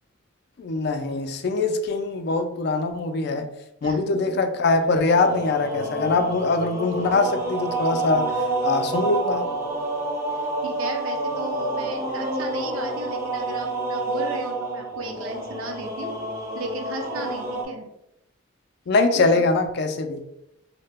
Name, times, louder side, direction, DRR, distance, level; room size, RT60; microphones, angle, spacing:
voice 1, 0.6-3.5 3.8-9.5 18.9-20.2, left 3 dB, 50° left, 7 dB, 0.3 m, -23 dB
sound 1, 5.1-17.6, right 2 dB, 15° right, 0.5 m, -28 dB
voice 2, 10.3-16.2 16.5-17.8 19.1-19.4, right 2 dB, 80° right, 2 dB, 0.6 m, -35 dB
2.8 x 2.1 x 3.3 m, 0.83 s
head